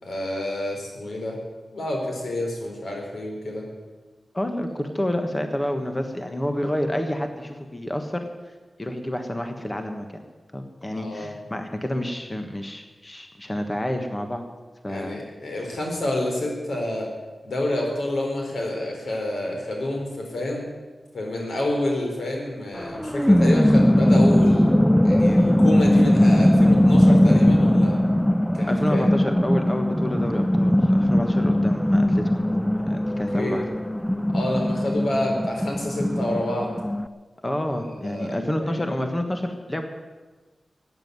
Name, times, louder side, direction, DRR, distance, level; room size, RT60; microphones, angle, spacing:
voice 1, 0.0-1.4 1.7-3.6 10.9-11.4 14.9-17.1 17.4-20.7 21.1-24.8 25.0-28.0 28.5-29.1 33.0-33.6 34.3-36.7 37.8-39.0, left 1 dB, 90° left, 0 dB, 4.3 m, -28 dB
voice 2, 4.3-8.2 8.8-10.2 10.5-14.4 14.8-15.2 28.7-32.3 32.9-33.6 37.4-39.8, left 1 dB, 20° left, 6 dB, 1.3 m, -28 dB
sound 1, 22.8-37.1, left 1 dB, 5° left, 0.4 m, -19 dB
15.0 x 9.3 x 9.5 m, 1.3 s
wide cardioid pair, 105°, 0 cm